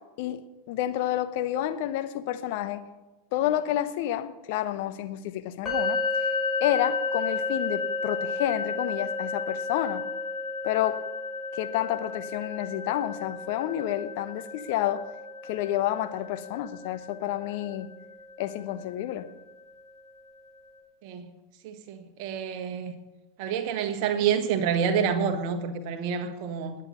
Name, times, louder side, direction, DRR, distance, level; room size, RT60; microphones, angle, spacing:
voice 1, 0.7-2.8 3.3-6.0 6.6-10.0 10.6-11.0 11.5-15.0 15.4-17.9 18.4-19.3, left 13 dB, 50° left, 1.0 m, -29 dB
sound 1, 5.7-19.5, left 3 dB, 20° left, 6.4 m, -33 dB
voice 2, 21.6-22.9 23.4-26.8, right 7 dB, 45° right, 1.5 m, -28 dB
20.0 x 8.8 x 5.8 m
figure-of-eight pair, 90°, 0 cm